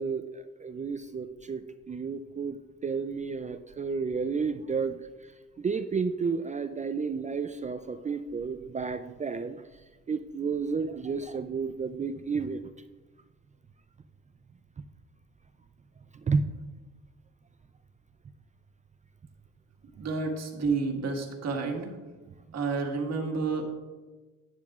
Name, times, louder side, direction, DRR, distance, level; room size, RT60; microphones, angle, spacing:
voice 1, 0.0-5.0 5.6-9.6 10.1-12.6 16.3-16.4, right 5 dB, 25° right, 9 dB, 0.4 m, -31 dB
voice 2, 19.9-21.9 22.5-23.7, right 4 dB, 60° right, 1 dB, 1.7 m, -30 dB
10.5 x 9.7 x 2.4 m, 1.2 s
cardioid pair, 90°, 30 cm